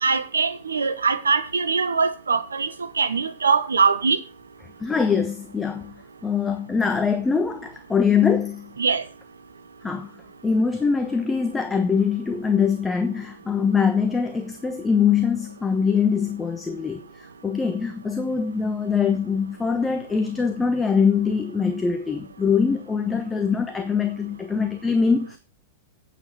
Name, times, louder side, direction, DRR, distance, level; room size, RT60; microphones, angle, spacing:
voice 1, 0.0-2.7 3.0-4.2 8.8-9.0, right 5 dB, 75° right, 1.3 m, -22 dB
voice 2, 4.8-5.9 6.2-8.7 9.8-10.1 10.4-17.0 17.4-25.4, left 6 dB, 10° left, 1.1 m, -23 dB
9.4 x 7.4 x 5.8 m
figure-of-eight pair, 95°, 0 cm